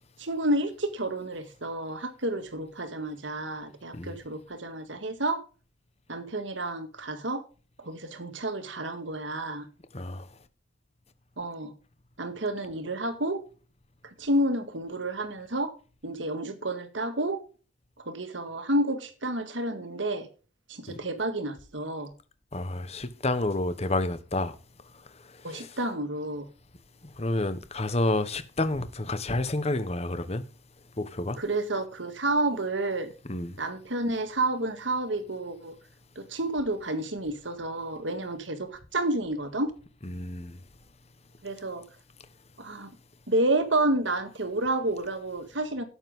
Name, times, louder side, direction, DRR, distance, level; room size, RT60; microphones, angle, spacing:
voice 1, 0.2-5.4 6.1-7.4 7.8-9.7 11.4-11.7 12.2-13.4 14.0-15.7 16.0-17.4 18.0-20.3 20.7-22.1 25.4-26.5 31.4-33.1 33.6-35.7 36.2-39.7 41.4-41.9 42.6-42.9 43.3-45.8, right 1 dB, 80° right, 1.9 m, -30 dB
voice 2, 9.9-10.3 20.9-21.0 22.5-24.6 25.1-25.7 27.2-30.5 31.0-31.4 33.3-33.6 40.0-40.6, left 2 dB, 35° left, 1.2 m, -30 dB
12.0 x 8.9 x 3.7 m
head